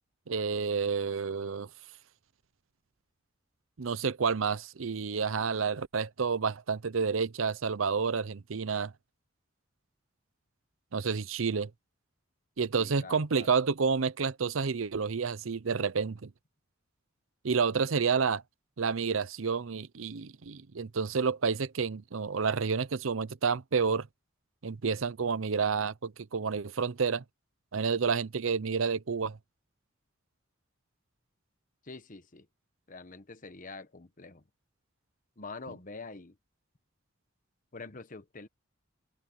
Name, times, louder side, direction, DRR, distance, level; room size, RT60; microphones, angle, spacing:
voice 1, 0.3-1.7 3.8-8.9 10.9-11.7 12.6-16.3 17.4-18.4 18.8-24.1 24.6-27.2 27.7-29.4, right 5 dB, 80° right, 0.7 m, -29 dB
voice 2, 12.8-13.5 31.8-32.5 32.9-34.4 35.4-36.4 37.7-38.5, left 3 dB, 40° left, 1.2 m, -45 dB
head